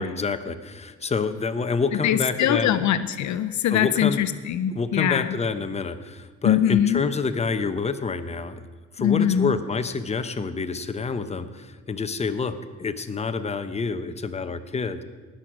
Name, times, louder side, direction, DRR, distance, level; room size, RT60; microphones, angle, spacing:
voice 1, 0.0-2.8 3.7-4.2 4.7-8.6 9.0-15.0, left 4 dB, 20° left, 10 dB, 0.8 m, -28 dB
voice 2, 2.0-5.4 6.4-7.0 9.0-9.5, left 10 dB, 70° left, 13 dB, 0.6 m, -22 dB
19.0 x 6.3 x 6.1 m, 1.4 s
cardioid pair, 90°, 30 cm